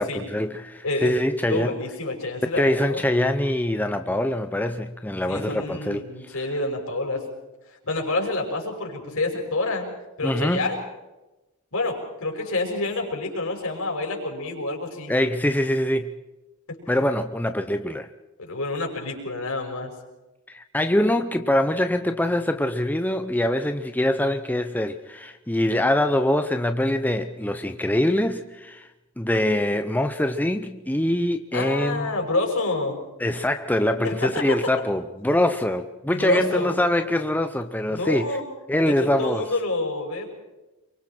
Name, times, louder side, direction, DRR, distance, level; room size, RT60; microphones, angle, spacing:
voice 1, 0.0-1.8 2.6-6.3 10.2-10.8 15.1-16.2 16.9-18.1 20.5-28.9 29.2-32.1 33.2-38.4 38.7-39.5, left 1 dB, 10° left, 0.7 m, -24 dB
voice 2, 0.8-1.1 1.5-3.0 5.3-7.2 7.8-9.9 10.2-10.8 11.7-15.1 18.4-19.9 31.5-33.0 34.0-34.6 36.1-36.8 37.9-38.4 38.8-40.3, left 2 dB, 65° left, 5.9 m, -28 dB
27.5 x 24.0 x 4.5 m
head